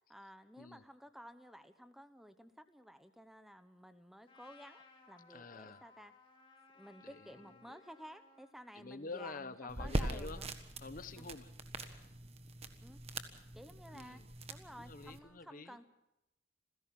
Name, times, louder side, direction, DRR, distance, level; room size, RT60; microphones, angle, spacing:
voice 1, 0.1-6.1 6.7-10.5 12.8-13.0 13.5-14.2 14.5-15.8, equal, ahead, 10 dB, 0.9 m, -54 dB
Trumpet, 4.3-8.6, left 4 dB, 25° left, 2.7 m, -62 dB
voice 2, 5.3-5.9 7.0-7.8 8.7-10.4 10.8-11.5 11.8-12.1 13.9-14.3 14.8-15.8, left 3 dB, 45° left, 13 dB, 0.9 m, -48 dB
sound 1, 9.7-15.2, right 1 dB, 30° right, 1.4 m, -42 dB
27.5 x 16.5 x 5.9 m, 0.91 s
head